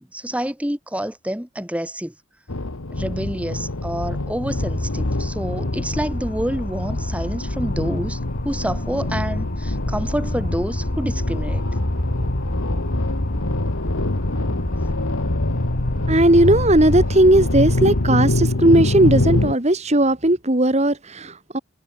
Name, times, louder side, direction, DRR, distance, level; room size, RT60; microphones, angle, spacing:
voice 1, 0.0-2.1 2.9-8.2 8.4-11.6, equal, 5° right, 2.4 m, -28 dB
sound 1, 2.5-19.5, left 2 dB, 80° left, 1.6 m, -25 dB
sound 2, 4.5-18.1, left 1 dB, 40° left, 2.2 m, -29 dB
voice 2, 16.1-21.6, right 1 dB, 30° right, 1.8 m, -17 dB
head